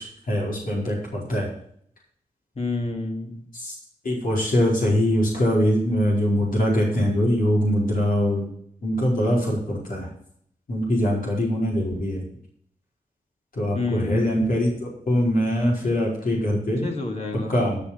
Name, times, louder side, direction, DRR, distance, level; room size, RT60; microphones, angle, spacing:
voice 1, 0.0-1.5 3.6-3.7 4.0-8.5 8.8-10.1 10.7-12.2 13.6-16.8 17.5-17.8, equal, 75° left, -4 dB, 4.7 m, -23 dB
voice 2, 2.6-3.5 13.7-14.4 16.8-17.6, left 2 dB, 50° left, 1 dB, 2.5 m, -29 dB
13.5 x 5.8 x 5.8 m, 0.64 s
cardioid pair, 65°, 15 cm